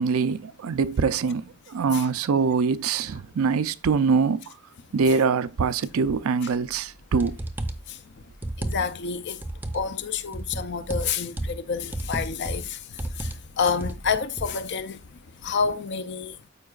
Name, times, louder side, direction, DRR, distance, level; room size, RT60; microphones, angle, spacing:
voice 1, 0.0-4.4 4.9-7.4, right 5 dB, 75° right, 0.4 m, -24 dB
sound 1, 6.7-6.8 7.2-7.9 8.4-9.1 9.4-9.9 10.3-11.6 11.9-12.7 13.0-13.4 13.7-14.5, right 1 dB, 10° right, 0.5 m, -32 dB
voice 2, 8.6-9.4 9.7-12.8 13.2-15.0 15.4-16.4, left 5 dB, 50° left, 0.5 m, -28 dB
12.5 x 4.7 x 2.4 m
head